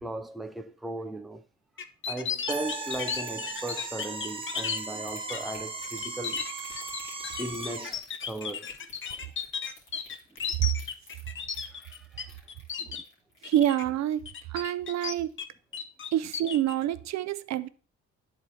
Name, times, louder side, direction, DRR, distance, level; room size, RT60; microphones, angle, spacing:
voice 1, 0.0-1.4 2.1-6.5 7.4-8.7 10.4-10.5 11.7-12.3 12.8-13.0, right 1 dB, ahead, 0.4 m, -37 dB
sound 1, 1.8-4.8 5.3-5.5 5.8-12.2 12.5-13.0 13.4-13.8 14.2-15.4 15.7-16.7, left 6 dB, 40° left, 0.7 m, -34 dB
sound 2, 2.5-8.0, right 3 dB, 15° right, 0.9 m, -37 dB
sound 3, 2.7-14.3 14.6-14.9 15.3-15.4, left 3 dB, 70° left, 2.6 m, -52 dB
voice 2, 13.4-15.3 16.1-17.7, right 12 dB, 65° right, 0.5 m, -27 dB
10.5 x 4.4 x 2.7 m
cardioid pair, 90°, 30 cm